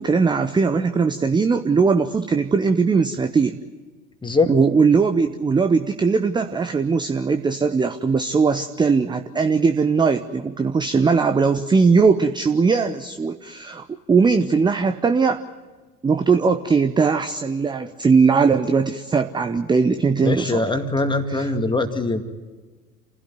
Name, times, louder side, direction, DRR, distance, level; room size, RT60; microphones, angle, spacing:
voice 1, 0.0-3.6 4.5-15.4 16.0-20.6 21.3-21.5, right 5 dB, 10° right, 9 dB, 0.7 m, -19 dB
voice 2, 4.2-4.5 20.2-22.2, left 3 dB, 10° left, 7 dB, 2.1 m, -22 dB
28.5 x 16.0 x 9.4 m, 1.3 s
figure-of-eight pair, 75°, 43 cm